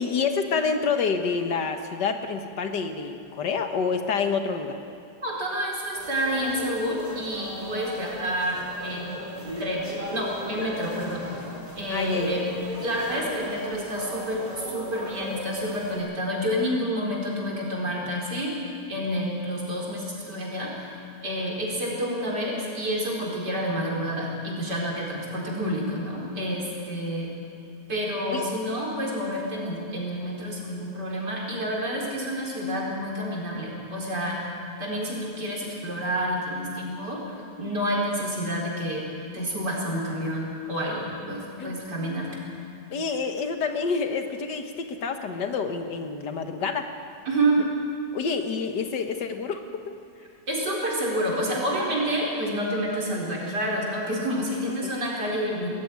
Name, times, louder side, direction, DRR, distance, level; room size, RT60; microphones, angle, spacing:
voice 1, 0.0-4.8 11.9-12.4 28.3-28.5 41.6-41.8 42.9-46.9 48.1-49.9 54.8-54.9, left 5 dB, 85° left, 6 dB, 2.0 m, -28 dB
voice 2, 5.2-9.2 9.6-11.3 11.7-12.5 12.8-18.5 18.9-20.9 21.2-27.3 27.9-34.5 34.8-39.0 39.3-42.4 47.3-47.6 50.5-55.7, equal, 75° right, -2 dB, 4.9 m, -29 dB
sound 1, 5.9-16.0, equal, 20° right, 4.2 m, -37 dB
20.0 x 14.5 x 9.6 m, 2.4 s
omnidirectional pair, 1.8 m